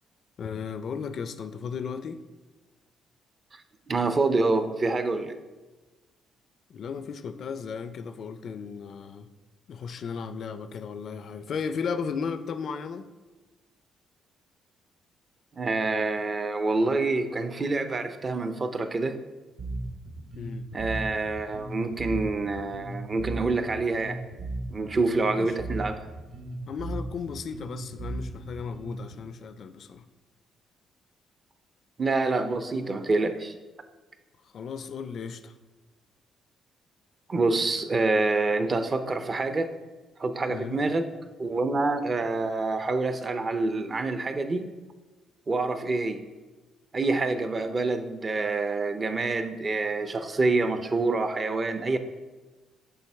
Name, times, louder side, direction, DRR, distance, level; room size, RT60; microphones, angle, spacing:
voice 1, 0.4-2.2 6.7-9.3 9.7-13.1 20.4-20.7 25.3-25.5 26.7-30.1 34.5-35.5 40.5-40.8, left 6 dB, 60° left, 11 dB, 0.4 m, -35 dB
voice 2, 3.9-5.4 15.5-19.2 20.7-24.2 24.7-26.0 32.0-33.5 37.3-39.7 40.2-41.0 41.4-44.7 45.5-46.2 46.9-52.0, right 3 dB, 35° right, 9 dB, 0.5 m, -27 dB
Bass guitar, 19.6-29.2, right 2 dB, 55° right, 0.9 m, -37 dB
6.9 x 4.1 x 3.4 m, 1.2 s
cardioid pair, 90°, 0 cm